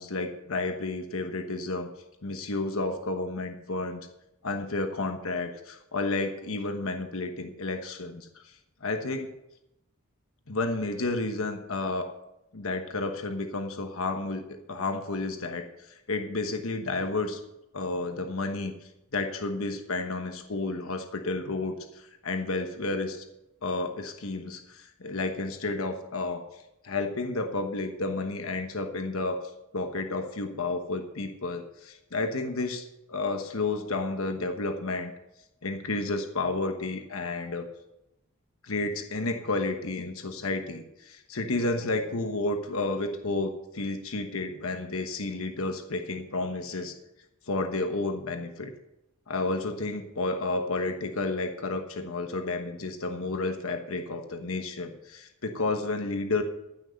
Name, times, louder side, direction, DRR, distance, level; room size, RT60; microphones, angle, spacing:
voice 1, 0.0-1.9 2.2-4.1 4.4-8.3 8.8-9.3 10.5-12.1 12.5-14.4 14.7-15.6 16.1-17.4 17.7-18.7 19.1-23.2 23.6-26.4 26.8-35.1 35.6-37.6 38.6-46.9 47.5-48.7 49.3-56.4, left 2 dB, 75° left, 6 dB, 1.1 m, -31 dB
14.5 x 6.4 x 6.5 m, 0.89 s
head